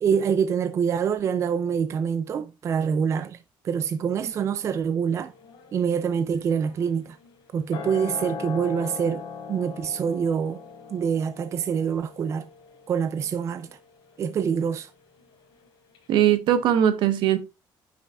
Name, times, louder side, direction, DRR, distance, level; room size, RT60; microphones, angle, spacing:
voice 1, 0.0-5.3 5.7-7.2 7.5-10.6 10.9-12.5 12.9-13.8 14.2-14.9, right 7 dB, 35° right, 0.4 m, -26 dB
sound 1, 5.3-15.7 15.9-16.0, left 5 dB, 75° left, 3.1 m, -41 dB
voice 2, 16.1-17.4, right 10 dB, 70° right, 1.2 m, -20 dB
9.7 x 5.8 x 2.4 m
cardioid pair, 160°, 8 cm